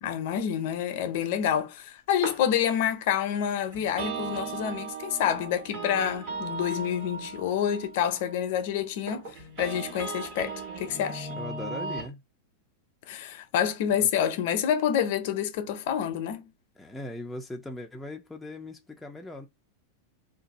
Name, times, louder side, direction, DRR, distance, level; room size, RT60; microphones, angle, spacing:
voice 1, 0.0-11.3 13.1-16.5, left 9 dB, 60° left, 0.6 m, -28 dB
sound 1, 1.7-3.2 3.6-3.7 3.9-4.7 5.1-5.2 5.7-6.5 7.2-7.9 9.1-9.6 10.7-11.3, right 2 dB, 70° right, 1.4 m, -42 dB
sound 2, 3.7-12.1, right 4 dB, 45° right, 1.3 m, -38 dB
voice 2, 11.4-12.2 14.0-14.1 16.8-19.5, left 2 dB, 5° left, 0.4 m, -39 dB
2.5 x 2.2 x 4.0 m
supercardioid pair, 150°, 0 cm